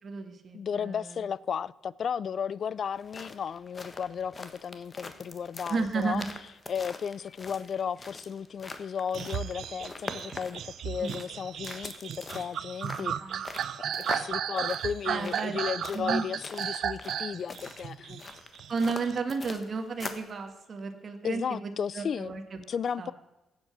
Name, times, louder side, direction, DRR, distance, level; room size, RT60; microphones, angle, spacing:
voice 1, 0.0-1.3 5.7-6.3 10.9-11.1 13.0-13.4 15.1-15.6 15.9-16.3 18.7-22.6 23.0-23.1, right 4 dB, 45° right, 1.8 m, -33 dB
voice 2, 0.5-6.2 6.7-13.4 14.0-18.3 21.2-22.3 22.7-23.1, left 7 dB, 55° left, 0.4 m, -34 dB
sound 1, 2.9-20.3, left 3 dB, 30° left, 1.3 m, -43 dB
sound 2, 9.1-19.2, right 9 dB, 70° right, 0.6 m, -34 dB
15.5 x 8.2 x 6.1 m
cardioid pair, 100°, 0 cm